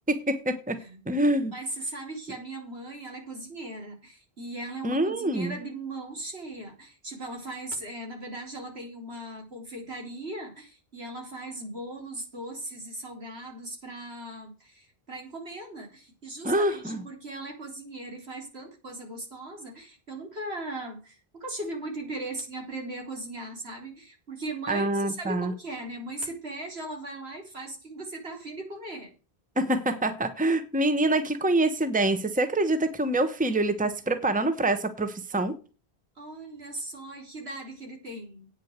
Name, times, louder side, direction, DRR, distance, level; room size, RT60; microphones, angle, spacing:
voice 1, 0.1-0.8 1.1-1.5 4.8-5.5 16.4-17.0 24.7-25.5 29.6-35.6, right 2 dB, 10° right, 1.1 m, -25 dB
voice 2, 1.3-29.1 36.2-38.5, right 2 dB, 80° right, 4.2 m, -38 dB
9.1 x 6.5 x 8.1 m
omnidirectional pair, 1.1 m